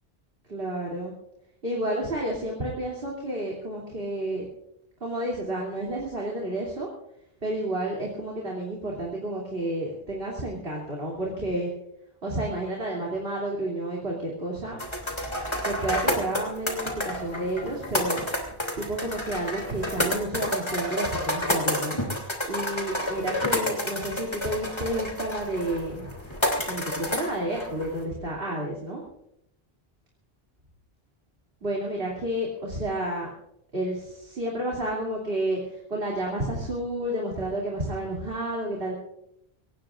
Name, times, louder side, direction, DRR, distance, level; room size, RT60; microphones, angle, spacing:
voice 1, 0.5-1.1 1.6-4.4 5.0-6.9 7.4-11.7 12.2-14.8 15.6-18.2 18.8-22.0 22.5-26.1 26.7-29.0 31.6-33.3 33.7-39.0, right 1 dB, 70° right, -3 dB, 3.2 m, -30 dB
sound 1, 14.8-28.0, left 1 dB, 25° left, 3.0 m, -30 dB
23.5 x 19.0 x 2.5 m, 0.78 s
omnidirectional pair, 1.0 m